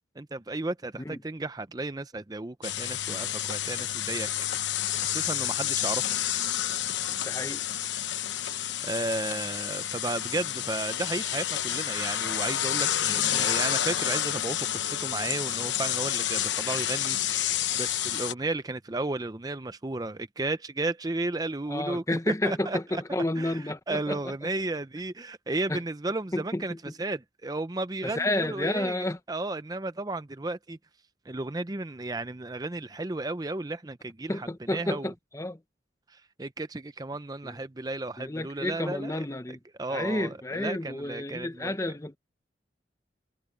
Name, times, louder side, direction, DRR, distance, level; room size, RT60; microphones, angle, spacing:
voice 1, 0.2-6.1 8.8-23.0 23.4-30.8 31.3-35.1 36.1-41.8, right 2 dB, 20° right, 0.5 m, -34 dB
sound 1, 2.6-18.3, left 11 dB, 80° left, 1.0 m, -29 dB
voice 2, 7.2-7.6 13.3-13.5 21.7-24.2 25.7-25.8 26.3-26.8 28.0-29.2 34.3-35.6 37.4-37.6 38.2-39.6 39.9-42.2, left 1 dB, 15° left, 0.7 m, -31 dB
head